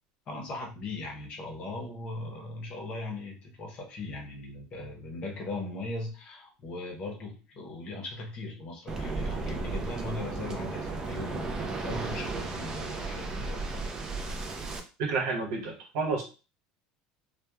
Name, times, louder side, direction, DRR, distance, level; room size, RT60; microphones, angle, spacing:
voice 1, 0.3-13.6, left 2 dB, 35° left, 1 dB, 0.7 m, -39 dB
Waves surf, 8.9-14.8, right 3 dB, 20° right, 0.3 m, -34 dB
voice 2, 15.0-16.2, right 4 dB, 80° right, 1 dB, 0.9 m, -30 dB
2.9 x 2.1 x 2.3 m, 0.32 s
cardioid pair, 170°, 3 cm